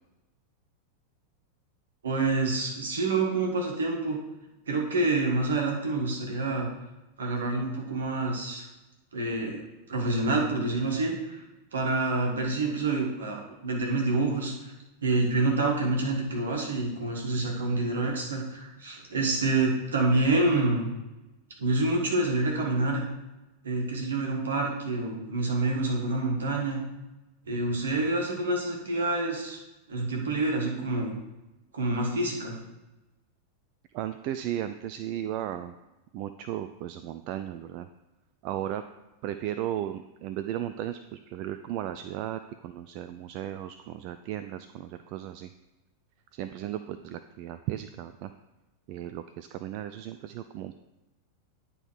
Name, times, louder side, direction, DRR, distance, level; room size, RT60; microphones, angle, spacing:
voice 1, 2.0-4.2 4.7-6.7 7.2-8.7 9.1-9.6 9.9-11.4 11.7-14.7 15.0-20.9 21.6-23.0 23.6-26.8 27.5-29.6 29.9-31.2 31.7-32.6, right 2 dB, 65° right, 0 dB, 1.7 m, -27 dB
voice 2, 33.9-35.7 36.1-37.9 38.4-38.8 39.2-45.5 46.3-48.3 48.9-50.7, right 11 dB, 45° right, 10 dB, 0.3 m, -35 dB
9.8 x 3.8 x 4.6 m, 1.1 s
figure-of-eight pair, 90°, 0 cm